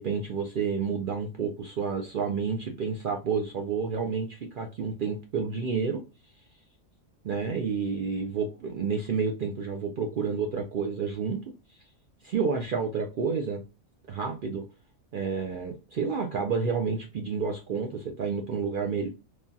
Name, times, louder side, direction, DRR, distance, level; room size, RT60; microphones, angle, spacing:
voice 1, 0.0-6.0 7.2-11.4 12.2-13.6 14.1-14.6 15.1-19.1, right 5 dB, 80° right, 3 dB, 0.4 m, -30 dB
3.2 x 2.3 x 2.6 m, 0.29 s
omnidirectional pair, 1.4 m